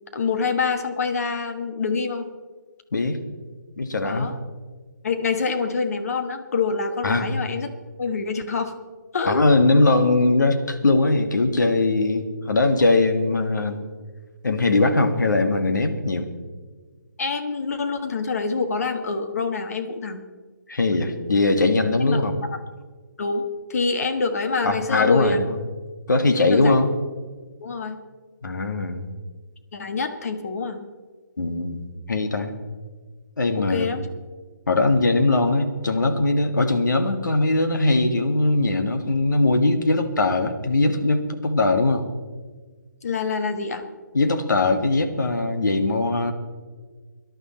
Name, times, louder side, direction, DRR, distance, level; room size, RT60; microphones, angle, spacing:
voice 1, 0.1-2.3 4.0-4.4 5.0-7.7 8.0-8.8 9.1-9.4 17.2-20.2 22.0-22.2 23.2-25.4 26.4-26.8 27.6-28.0 29.7-30.9 33.5-34.1 43.0-43.8, left 4 dB, 50° left, 7 dB, 1.2 m, -26 dB
voice 2, 2.9-3.2 3.8-4.3 7.0-7.3 9.3-13.8 14.4-16.3 20.7-22.3 24.6-25.6 26.1-26.9 28.4-29.1 31.4-32.6 33.4-33.9 34.7-42.0 44.1-46.3, left 2 dB, 65° left, 6 dB, 1.8 m, -21 dB
18.5 x 11.5 x 4.4 m, 1.4 s
figure-of-eight pair, 145°, 11 cm